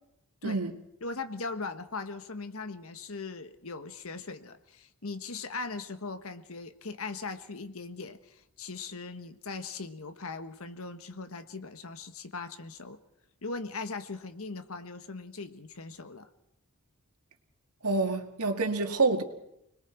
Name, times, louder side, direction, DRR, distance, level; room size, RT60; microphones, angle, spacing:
voice 1, 0.4-0.7 17.8-19.2, right 3 dB, 85° right, 2.1 m, -27 dB
voice 2, 1.0-13.0 13.4-16.3, left 3 dB, 70° left, 1.4 m, -39 dB
30.0 x 20.5 x 4.6 m
head